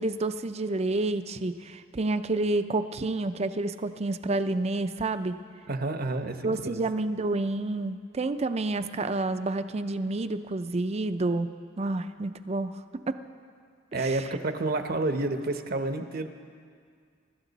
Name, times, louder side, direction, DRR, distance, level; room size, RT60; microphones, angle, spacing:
voice 1, 0.0-5.4 6.4-11.5 11.8-12.8 13.1-13.2 14.0-14.2, right 2 dB, 35° right, 11 dB, 0.5 m, -29 dB
voice 2, 5.7-6.8 13.9-16.3, right 2 dB, 50° right, 7 dB, 0.9 m, -29 dB
24.5 x 12.5 x 4.1 m, 2.1 s
head